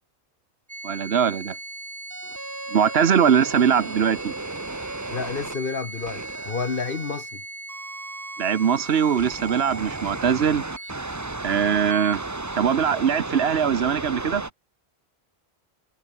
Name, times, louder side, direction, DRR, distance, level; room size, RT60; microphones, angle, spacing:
sound 1, 0.7-14.5, right 2 dB, 15° right, 0.9 m, -34 dB
voice 1, 0.8-1.6 2.7-4.3 8.4-10.6 11.4-12.2 12.6-14.4, right 8 dB, 75° right, 1.2 m, -21 dB
voice 2, 5.1-7.4, left 5 dB, 55° left, 1.6 m, -30 dB
omnidirectional pair, 1.1 m